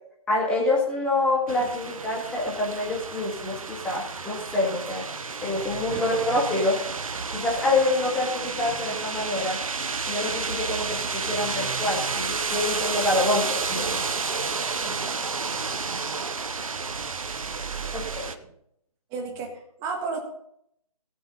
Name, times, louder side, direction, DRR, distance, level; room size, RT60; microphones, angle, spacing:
voice 1, 0.3-5.1 5.4-6.8 7.3-9.6 10.1-14.0 17.9-18.3, left 2 dB, 5° left, -3 dB, 2.0 m, -26 dB
sound 1, 1.5-18.3, right 4 dB, 60° right, 1.0 m, -31 dB
voice 2, 19.1-20.2, right 4 dB, 15° right, 2 dB, 1.5 m, -33 dB
20.0 x 7.1 x 4.0 m, 0.73 s
figure-of-eight pair, 150°, 20 cm